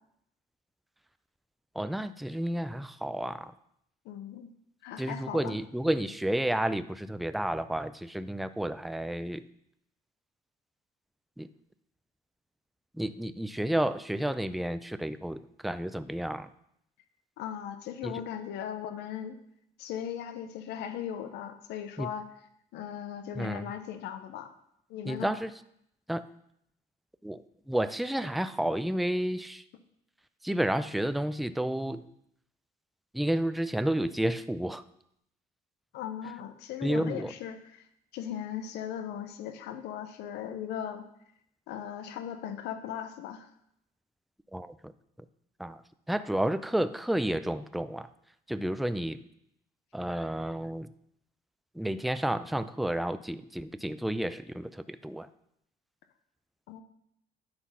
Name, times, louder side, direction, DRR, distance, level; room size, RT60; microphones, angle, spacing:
voice 1, 1.8-3.5 5.0-9.4 11.4-11.5 13.0-16.5 18.0-18.1 22.0-22.1 23.4-23.7 25.0-25.5 26.1-26.2 27.2-27.4 27.7-29.6 30.4-32.0 33.1-34.8 36.8-37.3 44.5-44.7 45.6-45.8 46.1-48.1 48.5-49.2 49.9-50.9 51.8-55.3, right 1 dB, ahead, 12 dB, 0.3 m, -31 dB
voice 2, 4.0-4.5 4.8-5.6 17.4-19.4 19.8-22.3 22.7-24.5 24.9-25.3 35.9-37.8 38.1-41.1 41.7-43.5 56.7-56.8, left 9 dB, 85° left, 9 dB, 0.7 m, -38 dB
9.8 x 4.1 x 5.6 m, 0.74 s
cardioid pair, 110°, 17 cm